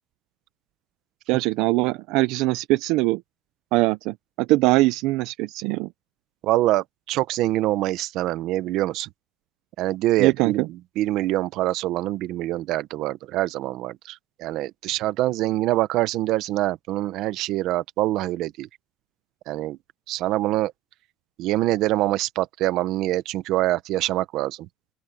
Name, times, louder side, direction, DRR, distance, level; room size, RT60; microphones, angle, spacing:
voice 1, 1.3-3.2 3.7-5.9 10.2-10.7, right 20 dB, 75° right, 0.4 m, -22 dB
voice 2, 6.4-9.1 9.8-18.7 19.5-19.8 20.1-20.7 21.4-24.6, right 15 dB, 55° right, 0.9 m, -25 dB
open air
cardioid pair, 180°, 0 cm